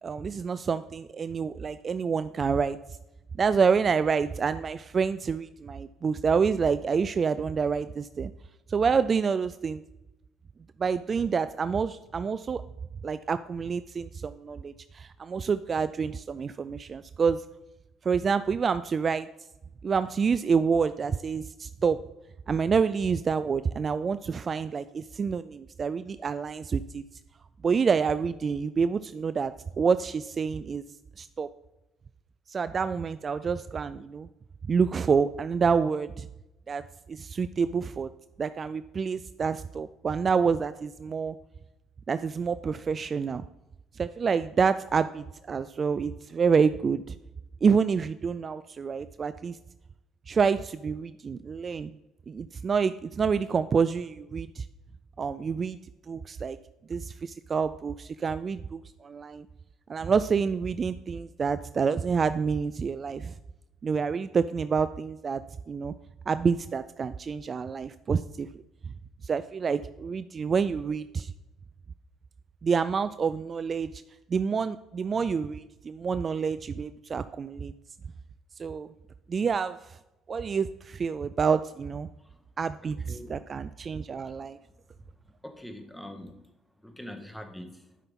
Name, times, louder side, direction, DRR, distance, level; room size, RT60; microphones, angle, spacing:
voice 1, 0.0-2.8 3.4-8.3 8.7-9.8 10.8-12.6 13.0-17.4 18.0-19.3 19.8-22.0 22.5-27.0 27.6-30.8 31.2-31.5 32.5-34.3 34.7-36.3 36.7-38.1 38.4-41.4 42.1-43.4 43.9-47.2 47.6-49.6 50.3-52.0 52.3-54.7 55.2-55.8 56.1-56.6 56.9-59.5 59.9-63.3 63.8-65.4 65.7-65.9 66.3-68.5 69.2-71.3 72.6-74.0 74.3-77.7 78.6-78.9 79.3-80.0 80.3-82.1 82.6-84.6, right 5 dB, 40° right, 13 dB, 0.3 m, -28 dB
voice 2, 83.1-83.4 84.2-84.4 85.4-86.5 86.8-87.8, left 1 dB, 5° left, 5 dB, 1.5 m, -43 dB
12.0 x 5.8 x 3.7 m, 0.94 s
supercardioid pair, 75°, 0 cm